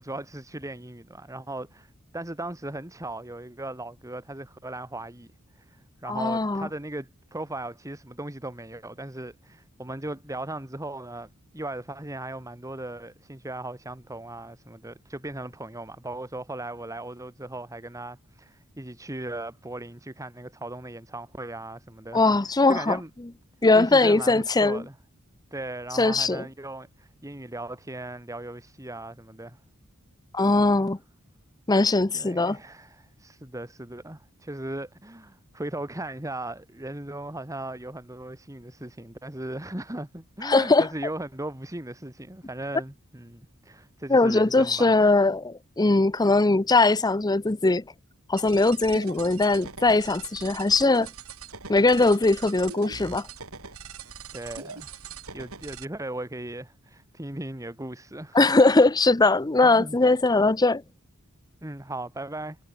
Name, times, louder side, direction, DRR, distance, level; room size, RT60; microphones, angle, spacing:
voice 1, 0.0-5.3 5.6-22.2 22.7-23.1 23.7-24.9 25.5-29.6 32.1-45.0 54.3-54.9 55.3-58.4 59.6-60.0 61.6-62.6, right 1 dB, 15° right, 1.9 m, -37 dB
voice 2, 6.1-6.7 22.1-23.0 23.6-24.8 25.9-26.4 30.3-31.0 31.7-32.6 40.4-40.9 44.1-47.8 48.3-51.1 51.7-53.3 58.3-60.8, left 3 dB, 20° left, 0.6 m, -20 dB
sound 1, 48.4-55.9, right 5 dB, 80° right, 5.0 m, -42 dB
head